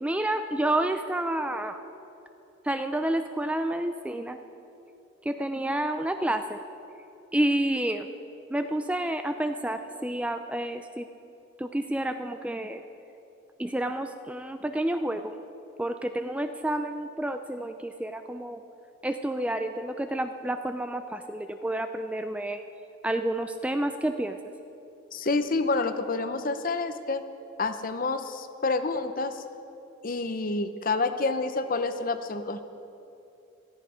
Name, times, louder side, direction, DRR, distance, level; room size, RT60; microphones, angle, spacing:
voice 1, 0.0-1.8 2.6-4.4 5.2-6.6 7.3-8.1 8.5-11.1 11.6-12.8 13.6-15.3 15.8-18.6 19.0-22.6 23.0-24.4, right 1 dB, 5° right, 8 dB, 0.4 m, -29 dB
voice 2, 25.1-27.2 27.6-29.4 30.0-32.6, left 3 dB, 45° left, 10 dB, 0.7 m, -28 dB
17.0 x 13.5 x 5.0 m, 2.8 s
head